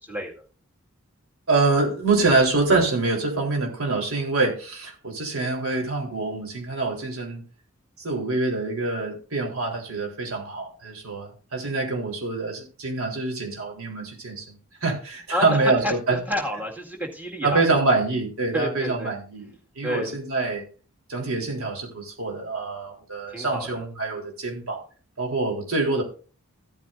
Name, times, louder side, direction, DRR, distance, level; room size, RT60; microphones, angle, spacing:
voice 1, 0.0-0.3 15.3-17.6 18.5-19.1 19.8-20.2 23.3-23.8, equal, 10° right, 0 dB, 2.0 m, -30 dB
voice 2, 1.5-7.4 8.0-16.2 17.4-19.5 19.8-20.6 21.1-24.8 25.2-26.0, right 3 dB, 70° right, 0 dB, 3.8 m, -25 dB
15.5 x 9.3 x 2.6 m, 0.37 s
head